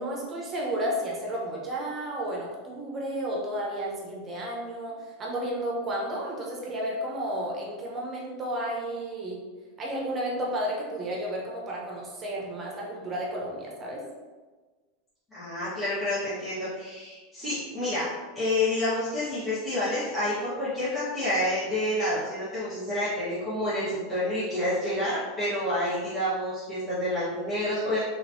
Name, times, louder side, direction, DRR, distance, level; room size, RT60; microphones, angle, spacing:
voice 1, 0.0-9.4 9.8-14.0, right 1 dB, 30° right, -3 dB, 0.9 m, -32 dB
voice 2, 15.3-28.0, left 1 dB, 15° left, -13 dB, 1.3 m, -29 dB
3.3 x 3.0 x 2.7 m, 1.3 s
supercardioid pair, 115°, 0 cm